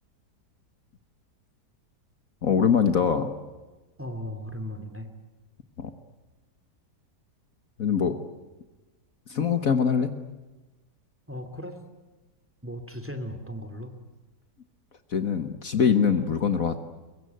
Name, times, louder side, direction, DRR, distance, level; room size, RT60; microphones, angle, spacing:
voice 1, 2.4-3.3 5.8-5.9 7.8-8.2 9.3-10.1 15.1-16.8, left 6 dB, 55° left, 9 dB, 1.7 m, -23 dB
voice 2, 4.0-5.1 11.3-11.8 12.6-13.9, equal, 5° right, 8 dB, 2.6 m, -36 dB
23.5 x 23.0 x 9.3 m, 1.1 s
omnidirectional pair, 1.8 m